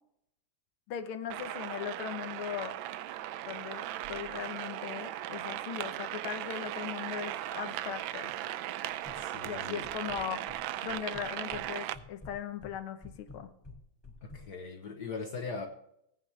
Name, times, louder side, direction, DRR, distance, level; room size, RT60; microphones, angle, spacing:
voice 1, 0.9-2.8 3.4-8.3 9.4-13.5, left 8 dB, 85° left, 8 dB, 1.9 m, -39 dB
sound 1, 1.3-11.9, right 13 dB, 75° right, 1.3 m, -38 dB
sound 2, 9.0-9.6 9.8-10.6 10.9-11.7 11.9-14.4, left 3 dB, 10° left, 2.4 m, -49 dB
voice 2, 9.1-9.8 14.2-15.7, left 4 dB, 60° left, 3 dB, 1.5 m, -40 dB
19.0 x 9.3 x 3.3 m, 0.77 s
omnidirectional pair, 2.3 m